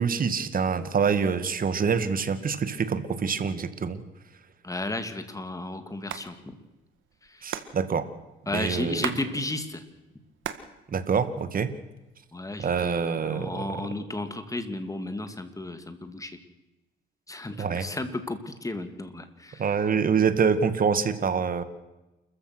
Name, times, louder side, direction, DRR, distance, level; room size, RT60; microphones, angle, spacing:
voice 1, 0.0-4.0 7.4-8.1 8.5-9.1 10.9-11.7 12.6-13.6 17.6-17.9 19.6-21.6, right 6 dB, 45° right, 12 dB, 2.0 m, -26 dB
voice 2, 4.6-6.6 7.2-7.5 8.5-9.8 12.3-16.3 17.3-19.6, left 2 dB, 15° left, 9 dB, 2.8 m, -33 dB
Hands, 5.9-6.3 6.5-6.6 6.8-9.3 9.6-10.7 11.1-11.8 12.4-13.0, right 10 dB, 80° right, 1.7 m, -36 dB
29.5 x 14.5 x 6.3 m, 1.0 s
cardioid pair, 90°, 20 cm